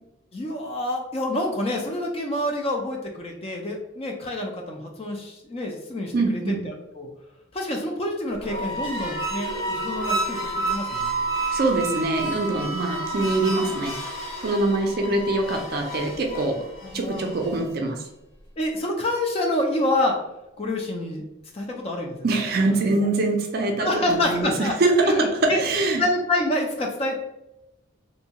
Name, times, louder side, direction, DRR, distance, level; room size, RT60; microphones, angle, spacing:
voice 1, 0.3-7.1 7.5-11.2 16.8-17.3 18.6-20.2 20.6-21.2 21.5-22.2 22.6-22.7 23.0-23.1 23.8-24.8 25.0-25.6 26.0-27.2, left 1 dB, 30° left, 1 dB, 0.4 m, -27 dB
voice 2, 6.1-6.6 11.5-14.0 14.4-16.6 16.9-18.0 22.2-26.0, right 2 dB, 50° right, 3 dB, 0.4 m, -23 dB
sound 1, 8.3-17.7, right 2 dB, 80° left, 0.6 m, -30 dB
2.6 x 2.3 x 2.8 m, 0.91 s
head